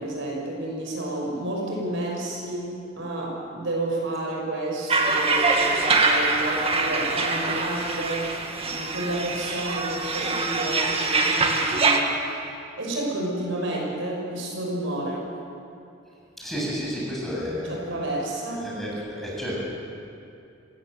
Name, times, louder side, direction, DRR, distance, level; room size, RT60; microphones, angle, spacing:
voice 1, 0.0-8.2 8.6-12.3 12.8-15.2 17.6-18.7, right 1 dB, 70° right, -2 dB, 6.2 m, -30 dB
sound 1, 4.9-12.0, right 3 dB, 30° right, 2.0 m, -24 dB
voice 2, 16.4-17.7 18.6-19.6, equal, ahead, -6 dB, 7.9 m, -31 dB
26.0 x 18.0 x 7.9 m, 2.7 s
head